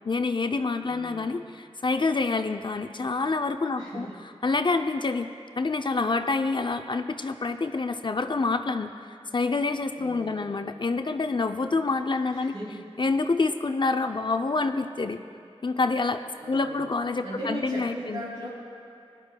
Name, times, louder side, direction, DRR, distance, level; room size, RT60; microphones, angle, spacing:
voice 1, 0.0-4.1 4.4-5.3 5.6-9.1 9.3-12.5 13.0-15.2 15.6-16.2 16.5-18.3, left 3 dB, 45° left, 7 dB, 0.5 m, -27 dB
voice 2, 0.8-1.4 3.8-4.1 10.0-10.6 12.3-12.8 16.4-16.9 17.2-18.5, right 1 dB, 75° right, -10 dB, 2.6 m, -38 dB
18.5 x 11.0 x 2.2 m, 2.7 s
wide cardioid pair, 60°, 11 cm